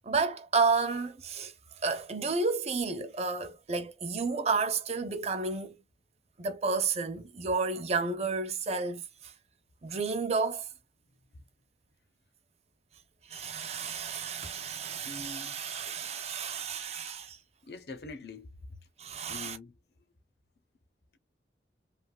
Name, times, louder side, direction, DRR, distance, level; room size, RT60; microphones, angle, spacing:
voice 1, 0.0-1.5 1.8-5.8 6.4-9.3 9.8-10.7 13.3-17.4 19.0-19.6, right 4 dB, 35° right, 0.6 m, -31 dB
voice 2, 15.0-15.6 17.7-18.5 19.3-19.7, left 3 dB, 65° left, 0.7 m, -43 dB
3.4 x 2.3 x 2.3 m
head